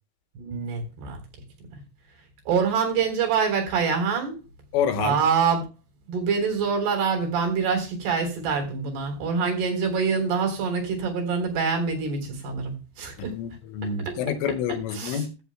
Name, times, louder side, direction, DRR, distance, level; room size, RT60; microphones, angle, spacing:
voice 1, 0.4-1.2 2.5-4.4 5.0-5.7 6.1-13.4 13.8-14.2 14.9-15.3, right 5 dB, 55° right, 5.5 m, -25 dB
voice 2, 4.7-5.2 13.2-15.3, left 7 dB, 85° left, 3.8 m, -27 dB
16.0 x 13.0 x 2.2 m
omnidirectional pair, 5.7 m